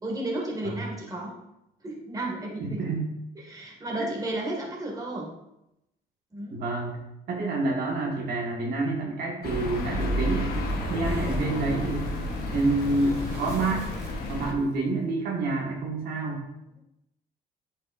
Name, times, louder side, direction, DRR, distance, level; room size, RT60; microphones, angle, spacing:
voice 1, 0.0-1.3 1.8-2.8 3.4-5.3 6.3-6.6, right 1 dB, 20° right, -2 dB, 1.9 m, -33 dB
voice 2, 2.6-3.0 6.5-7.0 7.3-10.6 10.9-12.0 12.5-13.9 14.3-16.4, right 3 dB, 65° right, -2 dB, 1.6 m, -28 dB
sound 1, 9.4-14.5, left 1 dB, 65° left, 1.1 m, -31 dB
sound 2, 10.5-14.7, right 2 dB, 85° right, 1.4 m, -41 dB
8.5 x 5.4 x 2.5 m, 0.86 s
cardioid pair, 110°, 17 cm